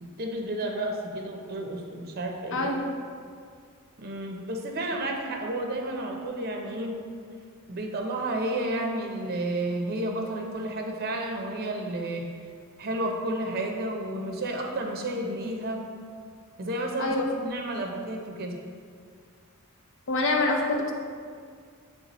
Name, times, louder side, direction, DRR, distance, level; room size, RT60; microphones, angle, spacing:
voice 1, 0.0-2.8 4.0-7.0 7.7-12.3 12.8-15.8 16.6-18.6, right 1 dB, 45° right, 2 dB, 0.7 m, -31 dB
voice 2, 2.5-2.9 17.0-17.5 20.1-20.9, left 2 dB, 60° left, 1 dB, 0.8 m, -26 dB
8.8 x 3.4 x 4.1 m, 2.1 s
head